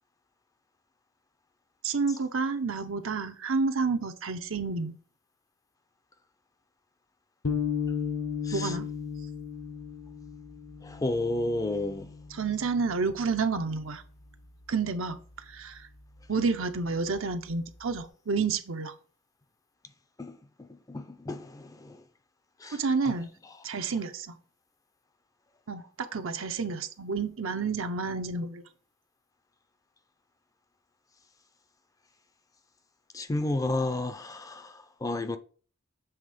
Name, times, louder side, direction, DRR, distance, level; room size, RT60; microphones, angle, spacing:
voice 1, 1.8-4.9 8.5-8.9 12.3-14.0 14.7-15.2 15.5-15.9 16.3-18.9 22.7-23.3 23.6-24.4 25.7-28.6, right 4 dB, 80° right, 0.8 m, -30 dB
sound 1, 7.4-13.9, left 7 dB, 85° left, 1.2 m, -35 dB
voice 2, 8.4-8.8 10.8-12.1 20.2-22.0 22.6-23.1 23.4-23.6 23.9-24.0 33.1-35.4, left 2 dB, 15° left, 0.4 m, -32 dB
7.2 x 3.5 x 5.0 m
head